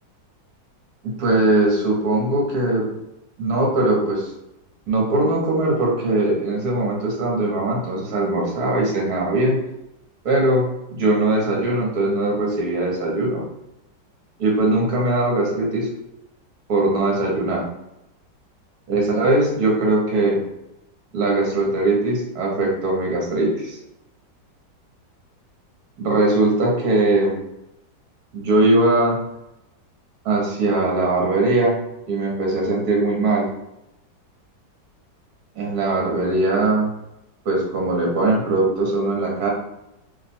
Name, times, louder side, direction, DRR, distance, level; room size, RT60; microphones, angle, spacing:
voice 1, 1.0-2.9 3.4-4.3 4.9-9.6 10.2-13.4 14.4-15.9 16.7-17.6 18.9-20.4 21.1-23.8 26.0-27.4 28.3-29.2 30.2-31.8 32.1-33.5 35.6-36.9 37.4-39.5, right 2 dB, 60° right, -2 dB, 1.5 m, -20 dB
3.1 x 2.4 x 4.2 m, 0.88 s
omnidirectional pair, 1.9 m